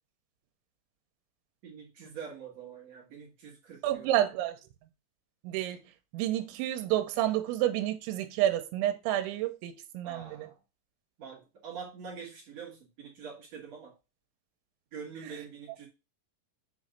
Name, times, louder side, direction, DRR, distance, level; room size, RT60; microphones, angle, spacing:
voice 1, 1.6-4.2 10.0-10.6 11.2-13.9 14.9-15.9, right 6 dB, 50° right, 2.3 m, -45 dB
voice 2, 3.8-4.5 5.4-5.8 6.1-10.5, right 13 dB, 80° right, 3.1 m, -29 dB
7.1 x 3.2 x 5.2 m
omnidirectional pair, 5.4 m